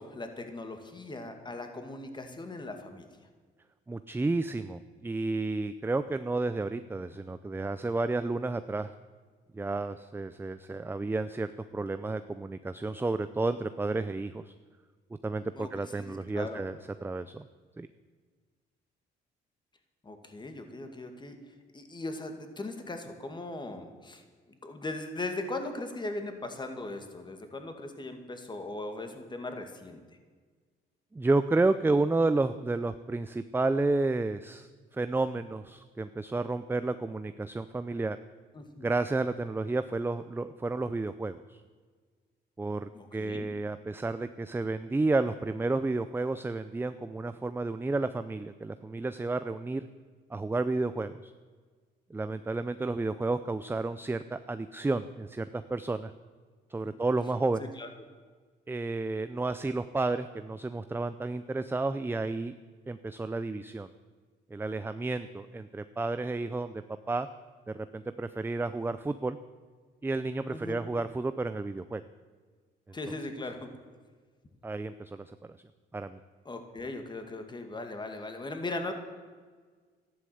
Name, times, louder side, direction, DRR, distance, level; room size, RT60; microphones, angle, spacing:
voice 1, 0.0-3.1 15.5-16.6 20.0-21.4 21.7-30.0 38.5-38.9 42.9-43.5 57.8-57.9 70.5-70.8 72.9-73.7 76.5-78.9, left 2 dB, 25° left, 6 dB, 2.3 m, -39 dB
voice 2, 3.9-8.9 9.5-14.5 15.2-16.8 17.0-17.5 17.8-17.9 31.1-38.2 38.8-41.6 42.6-49.9 50.3-51.3 52.1-56.1 56.7-57.7 58.7-62.6 62.9-63.9 64.5-67.3 67.7-69.4 70.0-72.0 74.6-75.3 75.9-76.2, right 3 dB, 10° right, 11 dB, 0.5 m, -31 dB
13.5 x 11.0 x 7.9 m, 1.5 s
cardioid pair, 105°, 19 cm